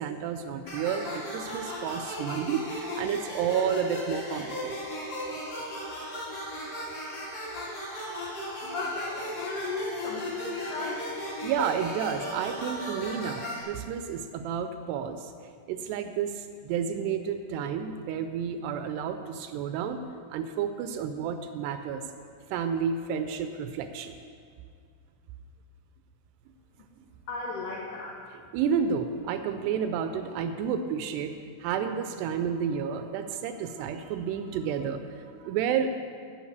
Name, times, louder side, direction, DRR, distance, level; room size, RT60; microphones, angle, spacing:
voice 1, 0.0-4.7 11.4-15.3 15.7-20.0 20.3-22.0 22.5-24.2 28.5-35.9, right 7 dB, 85° right, 9 dB, 2.5 m, -31 dB
sound 1, 0.7-13.6, equal, 55° left, 1.0 m, -36 dB
voice 2, 8.6-11.0 27.3-28.2, left 3 dB, 75° left, -3 dB, 1.8 m, -35 dB
9.4 x 5.8 x 8.0 m, 2.2 s
omnidirectional pair, 4.9 m